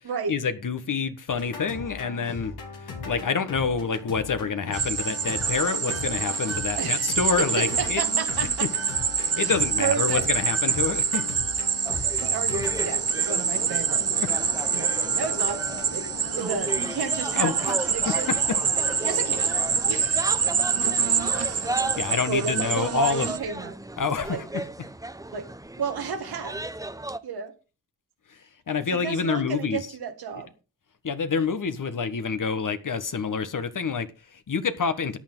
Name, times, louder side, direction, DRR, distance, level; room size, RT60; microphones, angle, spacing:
voice 1, 0.3-2.5 2.8-8.0 9.2-11.2 14.2-14.3 17.3-17.5 18.0-18.6 21.3-21.6 22.0-23.3 24.0-24.7 28.3-28.4 28.7-29.9 31.0-35.2, left 5 dB, 55° left, 1.4 m, -27 dB
sound 1, 1.3-19.6, left 6 dB, 90° left, 2.6 m, -40 dB
sound 2, 4.7-23.4, right 6 dB, 40° right, 0.8 m, -26 dB
voice 2, 6.7-8.7 9.3-9.5 9.8-10.3 12.2-14.1 14.7-15.6 15.9-16.1 16.4-18.3 19.0-19.5 19.9-20.5 21.4-21.6 22.3-23.8 24.3-24.4 25.3-25.5 25.8-26.6 27.2-27.5 29.0-30.5, right 6 dB, 80° right, 2.1 m, -32 dB
sound 3, 11.8-27.2, right 2 dB, 10° right, 0.9 m, -35 dB
13.5 x 8.9 x 3.9 m
cardioid pair, 45°, 37 cm